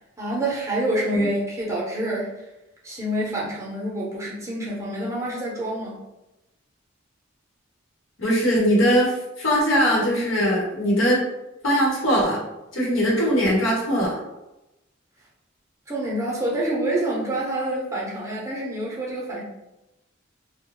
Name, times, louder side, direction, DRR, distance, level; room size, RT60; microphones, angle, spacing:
voice 1, 0.2-2.5 2.8-6.0 15.9-19.4, right 1 dB, 15° right, -5 dB, 0.7 m, -27 dB
voice 2, 8.2-11.2 11.6-12.4 12.7-14.1, equal, 85° left, -5 dB, 1.0 m, -21 dB
2.5 x 2.1 x 3.0 m, 0.95 s
head